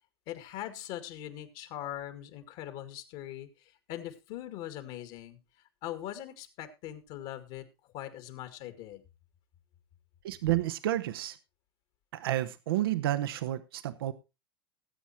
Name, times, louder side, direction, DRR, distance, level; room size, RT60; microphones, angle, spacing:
voice 1, 0.3-5.4 5.8-7.7 7.9-9.0, left 12 dB, 55° left, 10 dB, 2.1 m, -41 dB
voice 2, 10.2-11.4 12.1-14.1, right 14 dB, 70° right, 11 dB, 0.9 m, -30 dB
19.0 x 8.4 x 2.8 m, 0.26 s
hypercardioid pair, 90°, 13 cm